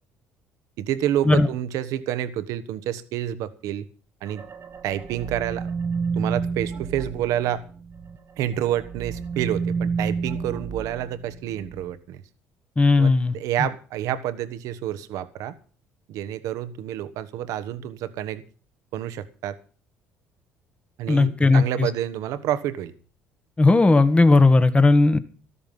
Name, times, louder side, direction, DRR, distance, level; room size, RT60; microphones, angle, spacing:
voice 1, 0.8-3.9 4.2-4.4 4.8-5.7 6.2-7.6 8.4-12.2 13.0-15.5 16.1-18.4 18.9-19.6 21.0-22.9, right 11 dB, 70° right, 13 dB, 1.3 m, -28 dB
sound 1, 4.3-8.2 8.5-11.9, right 5 dB, 45° right, 1.4 m, -30 dB
voice 2, 12.8-13.4 21.1-21.9 23.6-25.2, left 3 dB, 20° left, 11 dB, 1.5 m, -16 dB
13.0 x 13.0 x 5.5 m, 0.38 s
hypercardioid pair, 65°, 6 cm